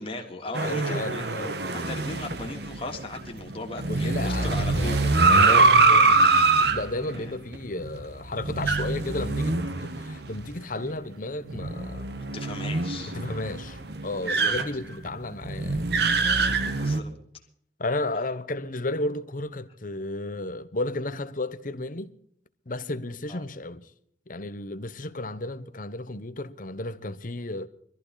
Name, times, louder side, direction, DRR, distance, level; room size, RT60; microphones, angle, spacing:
voice 1, 0.0-1.3 1.7-4.9 5.4-5.8 6.5-6.7 7.1-7.3 12.2-13.2 14.2-14.5 16.2-17.1 23.3-23.4, left 2 dB, 30° left, 3.0 m, -38 dB
sound 1, 0.5-10.5 10.8-10.9 11.5-17.0, right 3 dB, 60° right, 1.5 m, -24 dB
voice 2, 0.6-1.6 3.9-6.0 6.7-12.1 13.1-15.8 17.8-22.1 22.7-23.9 24.3-27.7, left 2 dB, 45° left, 1.1 m, -33 dB
23.0 x 14.5 x 4.1 m
head